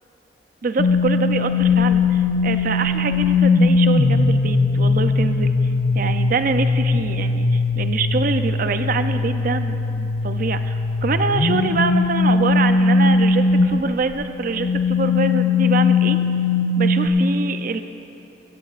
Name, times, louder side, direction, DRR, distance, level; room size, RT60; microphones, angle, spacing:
voice 1, 0.6-5.5 5.9-16.2 16.8-17.8, right 4 dB, 50° right, 9 dB, 0.5 m, -25 dB
sound 1, 0.8-13.9 14.4-17.1, left 3 dB, 50° left, 0.5 m, -19 dB
15.0 x 14.5 x 2.5 m, 2.8 s
head